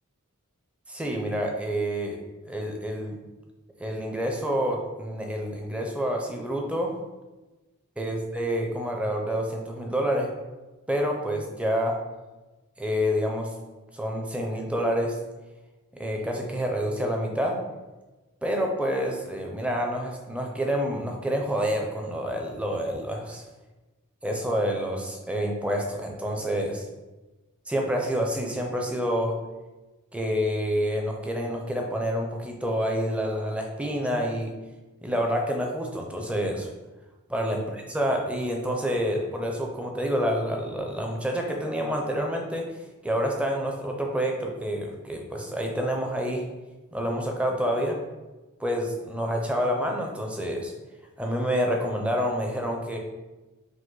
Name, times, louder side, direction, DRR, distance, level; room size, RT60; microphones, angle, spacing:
voice 1, 0.9-2.2 2.5-3.2 3.8-6.9 8.0-10.3 10.9-12.0 12.8-13.5 13.9-15.1 15.9-17.6 18.4-23.4 24.2-26.8 27.7-29.4 30.1-34.5 35.0-36.7 37.3-37.6 37.9-42.6 43.0-46.4 46.9-48.0 48.6-50.7 51.2-53.0, equal, 5° right, 1 dB, 0.5 m, -28 dB
5.0 x 2.1 x 3.9 m, 1.2 s
head